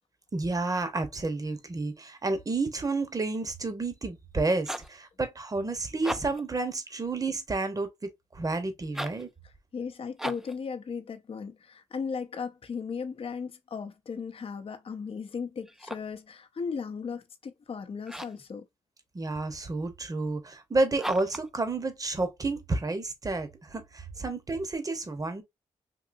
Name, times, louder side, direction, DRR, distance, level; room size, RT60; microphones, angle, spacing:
voice 1, 0.3-9.3 19.1-25.4, right 3 dB, 30° right, 0.9 m, -30 dB
sound 1, 4.7-5.0 5.9-6.5 8.9-9.3 10.2-10.6 15.6-16.2 18.0-18.5 21.0-21.5, equal, 5° right, 0.4 m, -37 dB
voice 2, 9.7-18.6, left 5 dB, 45° left, 0.6 m, -36 dB
3.7 x 2.7 x 2.5 m
cardioid pair, 70°, 13 cm